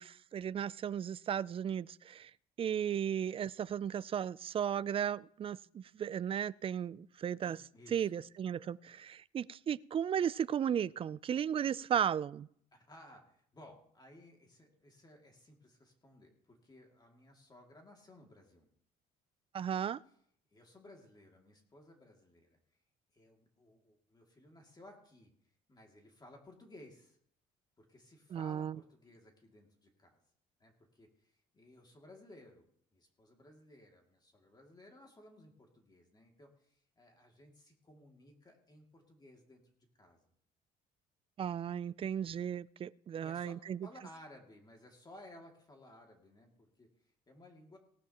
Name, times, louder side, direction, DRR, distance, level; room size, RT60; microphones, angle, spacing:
voice 1, 0.0-2.3 2.6-7.6 7.9-12.5 19.5-20.0 28.3-28.8 41.4-43.8, right 9 dB, 35° right, 0.4 m, -35 dB
voice 2, 7.4-8.1 12.7-18.7 20.5-22.6 23.1-25.3 25.7-27.2 27.8-30.2 30.6-32.7 32.9-40.3 43.2-43.5 43.8-47.8, left 1 dB, 25° left, 2.4 m, -58 dB
18.5 x 12.0 x 3.0 m
cardioid pair, 110°, 17 cm